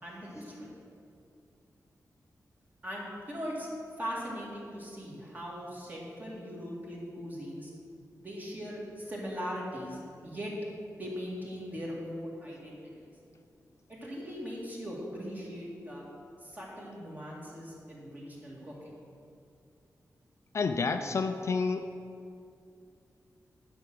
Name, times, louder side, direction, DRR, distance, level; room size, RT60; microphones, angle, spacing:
voice 1, 0.0-0.7 2.8-3.7 4.0-7.7 8.2-10.5 11.0-13.0 13.9-16.1 16.4-18.9, equal, 25° right, -4 dB, 2.1 m, -40 dB
voice 2, 20.5-21.9, left 4 dB, 45° left, 7 dB, 0.4 m, -29 dB
10.5 x 5.9 x 6.2 m, 2.4 s
wide cardioid pair, 165°, 6 cm